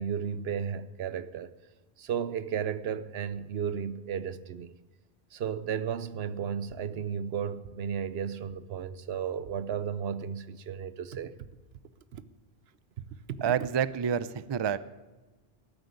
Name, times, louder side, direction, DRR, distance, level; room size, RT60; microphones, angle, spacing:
voice 1, 0.0-1.5 2.0-4.7 5.3-11.3 12.1-12.2 13.3-13.4, right 8 dB, 85° right, 0.9 m, -34 dB
voice 2, 13.4-14.8, right 8 dB, 45° right, 0.3 m, -28 dB
13.5 x 7.9 x 9.4 m
omnidirectional pair, 1.0 m